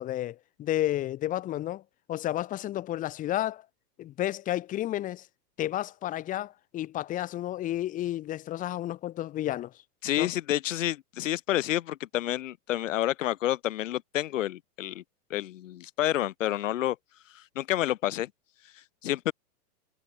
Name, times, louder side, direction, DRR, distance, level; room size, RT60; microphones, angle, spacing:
voice 1, 0.0-1.8 2.1-3.6 4.0-5.2 5.6-9.7 10.2-10.3, left 13 dB, 15° left, 3.2 m, -31 dB
voice 2, 10.0-15.0 15.3-17.0 17.3-18.3 19.0-19.3, left 13 dB, 50° left, 1.2 m, -29 dB
hypercardioid pair, 175°, 49 cm